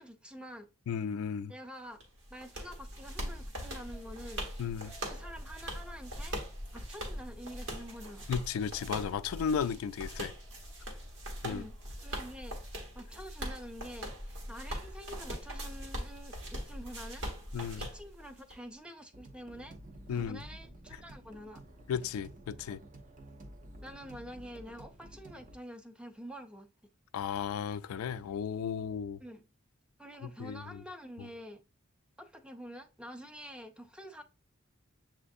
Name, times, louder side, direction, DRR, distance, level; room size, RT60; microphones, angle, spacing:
voice 1, 0.0-0.7 1.5-2.0 2.3-4.5 5.0-6.4 6.7-8.3 11.4-11.7 12.0-12.6 12.9-17.3 17.8-19.8 20.1-21.6 23.8-26.7 29.2-29.4 30.0-31.6 32.2-34.2, equal, 5° right, 0.4 m, -47 dB
voice 2, 0.9-1.5 4.6-4.9 8.3-10.3 11.4-11.6 17.5-17.9 20.1-20.4 21.9-22.8 27.1-29.2 30.2-30.8, left 7 dB, 75° left, 0.3 m, -34 dB
sound 1, 2.0-18.6, equal, 60° right, 1.3 m, -41 dB
sound 2, 3.9-12.1, left 1 dB, 85° right, 1.6 m, -63 dB
sound 3, 19.1-25.6, right 1 dB, 40° right, 0.7 m, -51 dB
7.1 x 2.5 x 2.6 m
head